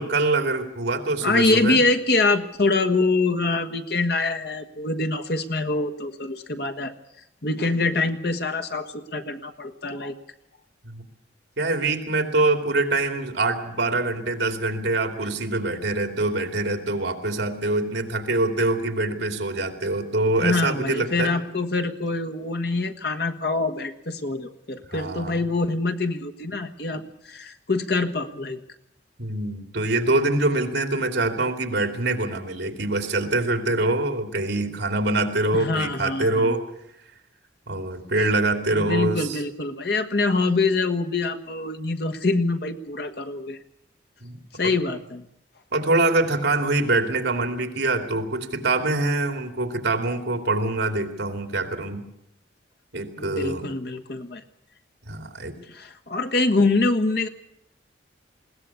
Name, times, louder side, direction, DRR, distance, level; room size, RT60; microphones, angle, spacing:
voice 1, 0.0-1.8 10.8-11.0 11.6-21.3 24.9-25.4 29.2-36.6 37.7-39.4 44.2-44.4 44.6-44.7 45.7-52.0 52.9-53.7 55.0-55.5, right 2 dB, 70° right, 6 dB, 2.8 m, -24 dB
voice 2, 1.2-6.9 7.4-10.1 20.4-27.0 27.3-28.6 35.5-36.6 38.7-43.6 44.6-45.2 53.2-54.4 55.7-57.3, left 3 dB, 55° left, 6 dB, 1.4 m, -25 dB
21.0 x 17.0 x 8.4 m, 0.77 s
head